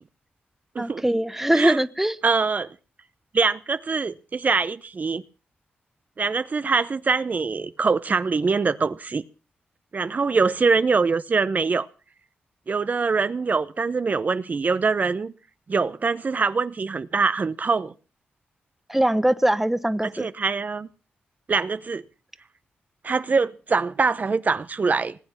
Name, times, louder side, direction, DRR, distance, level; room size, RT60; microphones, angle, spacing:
voice 1, 0.8-2.2 18.9-20.3, right 1 dB, 5° right, 1.0 m, -22 dB
voice 2, 2.2-2.7 3.3-5.2 6.2-9.2 9.9-11.9 12.7-15.3 15.7-17.9 20.0-20.9 21.5-22.0 23.0-25.2, right 4 dB, 45° right, 0.8 m, -23 dB
19.5 x 8.7 x 7.1 m
cardioid pair, 65°, 4 cm